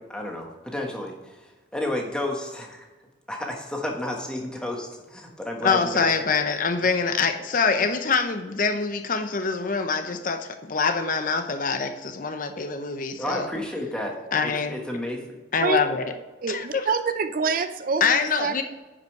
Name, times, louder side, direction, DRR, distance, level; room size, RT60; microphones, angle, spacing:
voice 1, 0.0-2.9 3.3-6.1 13.2-14.1 14.4-15.2, left 1 dB, 5° left, 1 dB, 1.4 m, -31 dB
voice 2, 5.6-13.5 14.3-14.8 15.5-16.1 16.5-16.8 18.0-18.6, left 5 dB, 45° left, 7 dB, 0.7 m, -25 dB
voice 3, 16.4-18.6, right 4 dB, 50° right, 10 dB, 0.5 m, -26 dB
9.6 x 5.4 x 4.7 m, 1.2 s
head